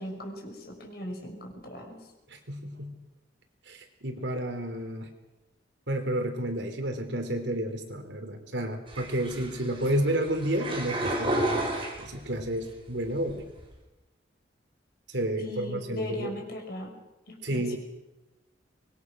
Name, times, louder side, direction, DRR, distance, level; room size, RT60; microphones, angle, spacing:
voice 1, 0.0-2.0 15.4-16.9 17.3-17.8, left 1 dB, 55° left, 2 dB, 5.7 m, -38 dB
voice 2, 2.3-3.0 3.7-5.1 5.9-13.5 15.1-16.3 17.4-17.8, right 1 dB, 65° right, 5 dB, 3.8 m, -31 dB
sound 1, 8.9-12.5 13.0-13.6, right 1 dB, 30° right, 5.7 m, -32 dB
24.5 x 21.5 x 6.4 m, 1.0 s
head